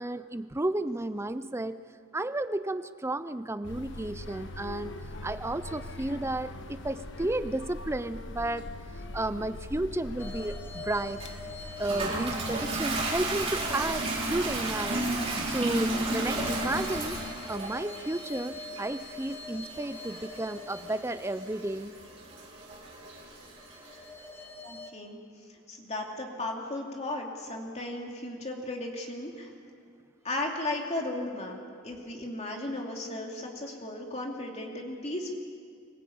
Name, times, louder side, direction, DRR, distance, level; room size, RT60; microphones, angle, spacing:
voice 1, 0.0-1.8 2.1-4.9 5.2-8.7 9.1-11.2 11.8-15.0 15.5-17.2 17.5-21.9, right 1 dB, 10° right, 12 dB, 0.5 m, -32 dB
sound 1, 3.6-17.3, left 1 dB, 55° left, 1.3 m, -42 dB
sound 2, 10.2-22.3 23.4-24.9, left 3 dB, 10° left, 0.9 m, -46 dB
Toilet flush, 11.2-24.0, right 2 dB, 30° right, 3.8 m, -34 dB
voice 2, 24.6-25.2 25.7-29.5 30.2-31.6 31.8-35.3, left 2 dB, 30° left, 1 dB, 2.8 m, -35 dB
24.5 x 16.0 x 8.6 m, 2.3 s
head